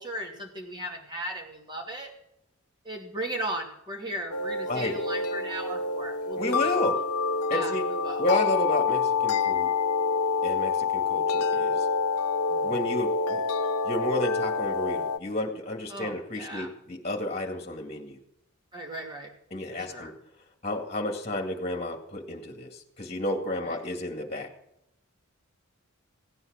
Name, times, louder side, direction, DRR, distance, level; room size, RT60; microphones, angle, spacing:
voice 1, 0.0-2.1 2.8-6.7 7.5-8.2 12.5-12.8 15.9-16.7 18.7-19.3 19.7-20.1 23.6-23.8, right 1 dB, 20° right, 0 dB, 2.8 m, -37 dB
sound 1, 4.3-15.2, left 5 dB, 85° left, 0.8 m, -27 dB
voice 2, 6.4-7.0 7.5-7.9 8.2-9.7 10.4-11.9 12.6-13.4 13.8-18.2 19.5-20.1 20.6-24.5, left 1 dB, 30° left, 3 dB, 2.1 m, -31 dB
17.0 x 9.7 x 6.4 m, 0.79 s
head